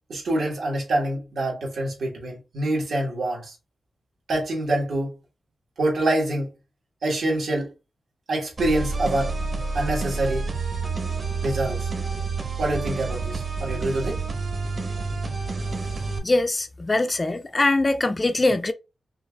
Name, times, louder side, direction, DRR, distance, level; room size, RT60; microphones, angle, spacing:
voice 1, 0.1-3.5 4.3-5.1 5.8-6.5 7.0-7.7 8.3-10.5 11.4-11.9 12.6-14.2, right 1 dB, 70° right, 1.4 m, -26 dB
sound 1, 8.6-16.2, right 4 dB, 40° right, 1.0 m, -29 dB
voice 2, 16.2-18.7, left 2 dB, 20° left, 0.3 m, -22 dB
5.5 x 2.4 x 2.3 m
wide cardioid pair, 145°, 0 cm